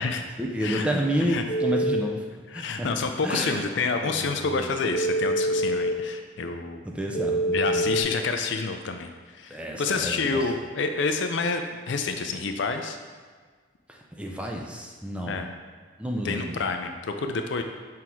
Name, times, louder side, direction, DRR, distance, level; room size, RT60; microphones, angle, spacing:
voice 1, 0.4-3.6 4.0-4.7 6.9-8.0 9.5-10.4 13.9-15.4 16.0-16.6, equal, 5° right, 0 dB, 0.4 m, -30 dB
Telephone, 1.5-2.0 4.9-5.9 7.1-8.0, right 1 dB, 30° left, 1.1 m, -25 dB
voice 2, 2.5-6.8 7.5-13.0 15.3-15.5 16.2-17.6, left 4 dB, 60° left, 6 dB, 0.4 m, -28 dB
6.0 x 3.6 x 4.5 m, 1.5 s
head